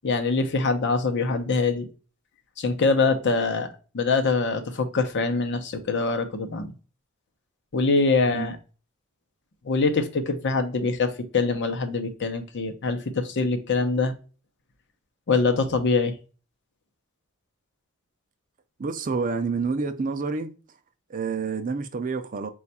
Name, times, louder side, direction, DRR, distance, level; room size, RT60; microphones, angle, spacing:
voice 1, 0.0-1.9 2.6-3.7 3.9-6.7 7.7-8.6 9.6-14.1 15.3-16.1, left 3 dB, 55° left, 0.7 m, -24 dB
voice 2, 18.8-20.5 21.1-22.5, right 4 dB, 40° right, 0.4 m, -28 dB
4.3 x 2.4 x 4.0 m
head